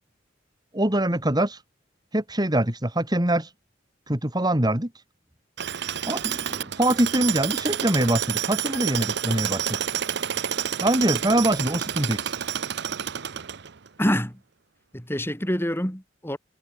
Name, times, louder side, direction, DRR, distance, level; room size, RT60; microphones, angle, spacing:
voice 1, 0.7-1.6 2.1-3.5 4.1-4.9 6.0-9.8 10.8-12.5, right 1 dB, 20° right, 3.0 m, -24 dB
Tools, 5.6-13.9, right 9 dB, 65° right, 0.8 m, -29 dB
voice 2, 14.0-14.4 14.9-16.4, equal, 15° left, 5.8 m, -26 dB
head